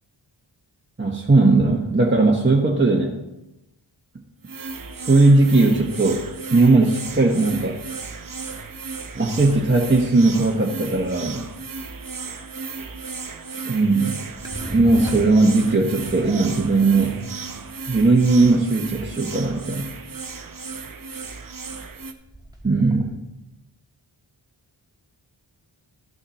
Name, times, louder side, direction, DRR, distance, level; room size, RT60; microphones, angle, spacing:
voice 1, 1.0-3.2 5.0-6.2 6.5-7.8 9.1-11.5 13.6-14.2 14.7-17.2 17.9-19.9 22.6-23.2, right 3 dB, 25° right, -1 dB, 1.1 m, -18 dB
sound 1, 4.4-22.1, right 4 dB, 45° right, 0.8 m, -35 dB
sound 2, 14.3-23.1, right 1 dB, 10° right, 1.7 m, -38 dB
13.5 x 6.5 x 4.2 m, 0.93 s
wide cardioid pair, 85°, 48 cm